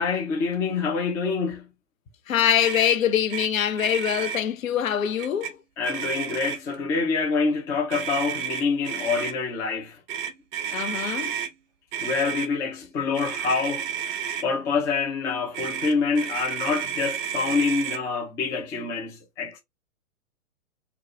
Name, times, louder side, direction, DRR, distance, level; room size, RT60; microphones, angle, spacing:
voice 1, 0.0-1.6 5.8-9.9 12.0-13.9 14.4-19.6, left 5 dB, 10° left, 0.4 m, -26 dB
voice 2, 2.3-5.6 10.7-11.4, left 9 dB, 75° left, 0.7 m, -24 dB
Motor vehicle (road), 2.6-3.0 3.3-3.5 3.7-4.4 5.2-5.5 5.8-6.7 7.9-9.3 10.1-11.5 11.9-12.5 13.1-14.5 15.5-18.0, right 9 dB, 35° right, 0.6 m, -31 dB
3.9 x 2.3 x 2.8 m
figure-of-eight pair, 115°, 41 cm